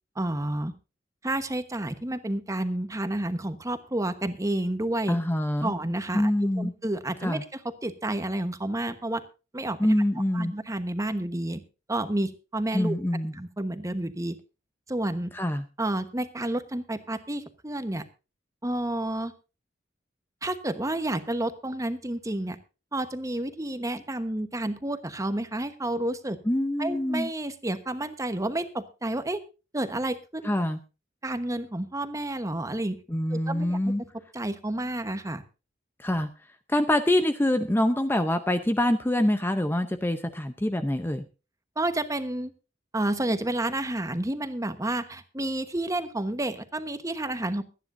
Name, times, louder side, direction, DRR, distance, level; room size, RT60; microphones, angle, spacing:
voice 1, 0.2-0.7 1.2-5.2 5.6-6.3 6.6-9.2 9.5-9.9 10.3-11.6 11.9-13.0 13.3-14.4 14.9-15.3 15.8-18.0 18.6-19.3 20.4-22.6 22.9-26.4 26.8-29.4 29.7-30.5 31.2-33.0 33.3-33.8 34.3-35.4 41.8-42.5 42.9-47.6, right 1 dB, 20° right, 10 dB, 1.1 m, -30 dB
voice 2, 5.1-5.7 6.1-6.7 7.2-7.4 9.8-10.5 12.7-13.3 15.3-15.7 26.4-27.3 30.4-30.8 33.1-34.0 36.0-36.3 36.7-41.2, left 1 dB, 10° left, 9 dB, 0.7 m, -25 dB
23.5 x 9.9 x 2.6 m, 0.31 s
head